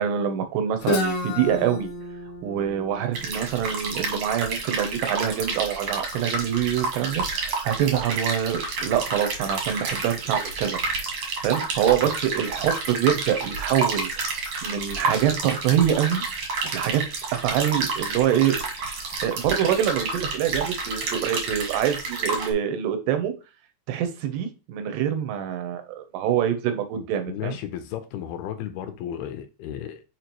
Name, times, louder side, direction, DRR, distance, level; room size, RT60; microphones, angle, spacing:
voice 1, 0.0-1.9 2.4-10.8 11.4-16.2 16.6-17.0 17.4-18.6 19.2-23.4 23.9-27.6, right 9 dB, 85° right, 3.1 m, -25 dB
Guitar, 0.8-4.6, left 1 dB, 60° left, 2.4 m, -31 dB
sound 1, 3.1-22.5, right 3 dB, 55° right, 1.9 m, -29 dB
voice 2, 26.9-30.0, left 10 dB, 80° left, 2.5 m, -34 dB
6.9 x 4.9 x 3.0 m
omnidirectional pair, 4.7 m